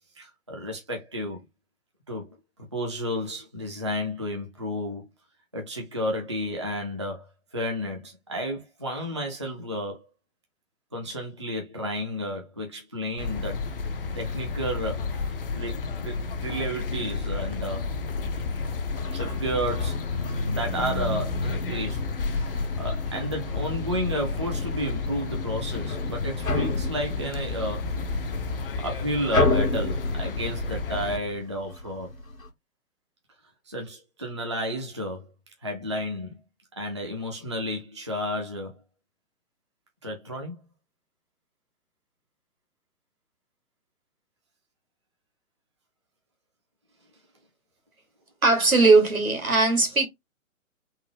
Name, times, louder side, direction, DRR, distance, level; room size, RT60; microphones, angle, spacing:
voice 1, 0.2-1.5 2.1-2.4 2.7-5.1 5.5-10.0 10.9-13.6 14.1-15.1 15.5-17.9 19.1-20.0 20.4-27.9 28.8-32.1 33.7-35.3 35.6-36.3 36.8-38.7 40.0-40.6, equal, 25° right, 0.3 m, -32 dB
sound 1, 13.2-31.2, left 4 dB, 45° left, 0.4 m, -31 dB
sound 2, 18.9-32.5, left 3 dB, 80° left, 1.0 m, -33 dB
voice 2, 48.4-50.1, right 3 dB, 85° right, 1.5 m, -19 dB
3.6 x 2.0 x 3.2 m
figure-of-eight pair, 125°, 41 cm